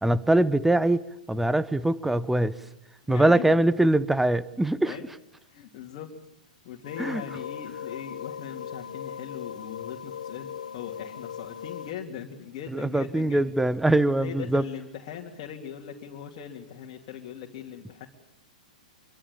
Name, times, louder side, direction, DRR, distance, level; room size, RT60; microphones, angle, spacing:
voice 1, 0.0-1.0 1.3-2.5 3.1-4.9 7.0-7.2 12.7-14.6, right 1 dB, 5° right, 18 dB, 0.9 m, -22 dB
voice 2, 3.0-3.6 4.9-5.1 5.5-6.1 6.6-13.5 14.0-18.1, left 9 dB, 40° left, -1 dB, 3.0 m, -40 dB
sound 1, 6.8-11.9, left 8 dB, 70° left, 1.2 m, -38 dB
26.5 x 24.0 x 7.2 m, 0.78 s
figure-of-eight pair, 110°, 4 cm